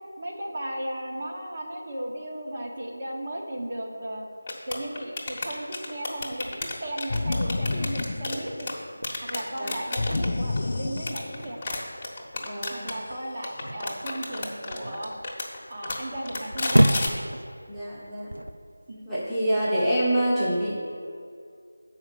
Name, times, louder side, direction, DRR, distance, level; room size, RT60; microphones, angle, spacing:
voice 1, 0.2-4.3 4.7-8.7 9.2-11.8 12.7-15.1 15.7-17.0 18.9-19.1, right 1 dB, 35° right, -2 dB, 1.2 m, -35 dB
sound 1, 4.5-8.7 9.0-10.3 10.6-12.9 13.4-15.6 15.8-17.1, left 2 dB, 25° left, 1.1 m, -32 dB
sound 2, 6.2-19.3, right 1 dB, 85° right, 0.5 m, -31 dB
sound 3, 7.1-8.8 10.0-11.6, left 2 dB, 50° left, 0.3 m, -29 dB
voice 2, 12.4-12.9 17.7-18.3 19.0-20.8, right 1 dB, ahead, -13 dB, 1.0 m, -26 dB
7.1 x 5.0 x 6.8 m, 2.3 s
figure-of-eight pair, 165°, 0 cm